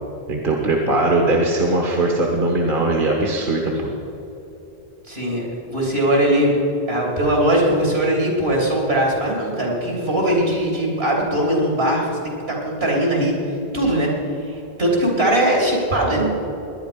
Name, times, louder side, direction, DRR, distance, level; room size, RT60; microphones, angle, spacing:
voice 1, 0.3-3.9, right 2 dB, 55° right, 0 dB, 1.5 m, -20 dB
voice 2, 5.1-6.6 6.9-14.1 14.5-16.4, right 1 dB, 75° right, -2 dB, 3.5 m, -20 dB
19.5 x 10.5 x 5.2 m, 2.9 s
omnidirectional pair, 1.1 m